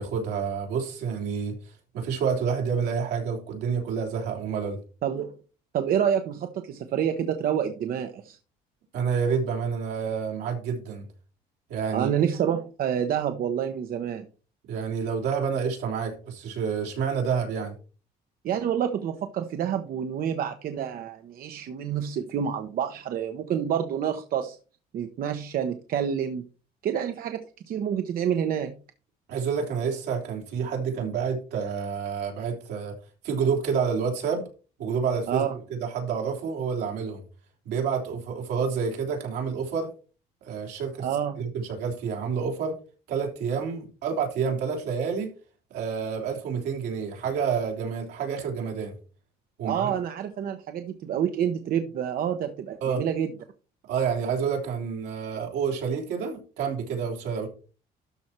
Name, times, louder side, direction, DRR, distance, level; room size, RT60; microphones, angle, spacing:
voice 1, 0.0-1.5 1.9-4.8 8.9-11.0 11.7-12.1 14.7-17.7 29.3-33.0 33.2-34.4 34.8-35.4 35.7-37.2 37.6-39.9 40.4-41.1 41.4-42.7 43.1-45.3 45.7-48.9 49.6-50.0 52.8-53.0 53.9-57.5, right 6 dB, 85° right, 1 dB, 3.4 m, -28 dB
voice 2, 5.0-5.3 5.7-8.4 11.9-14.2 18.4-24.6 24.9-26.4 26.8-28.7 35.3-35.5 41.0-41.4 49.6-53.3, right 9 dB, 60° right, 7 dB, 0.9 m, -28 dB
12.5 x 4.3 x 4.5 m, 0.35 s
cardioid pair, 110°, 17 cm